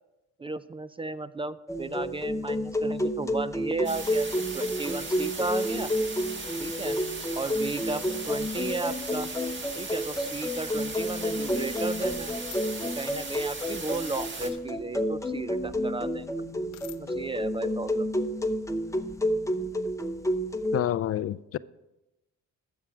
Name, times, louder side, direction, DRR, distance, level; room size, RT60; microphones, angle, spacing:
voice 1, 0.4-4.3 4.5-5.9 6.6-7.0 7.3-9.3 9.7-12.4 12.8-16.5 17.0-18.2, right 3 dB, 20° right, 14 dB, 0.3 m, -34 dB
sound 1, 1.7-20.8, equal, 10° left, 0.7 m, -30 dB
sound 2, 3.8-14.5, right 3 dB, 40° right, 1.8 m, -38 dB
sound 3, 12.5-12.6 14.4-14.7 16.7-17.0, left 16 dB, 90° left, 0.6 m, -47 dB
voice 2, 20.7-21.6, left 12 dB, 50° left, 18 dB, 0.4 m, -28 dB
13.0 x 7.3 x 5.0 m, 0.95 s
cardioid pair, 90°, 30 cm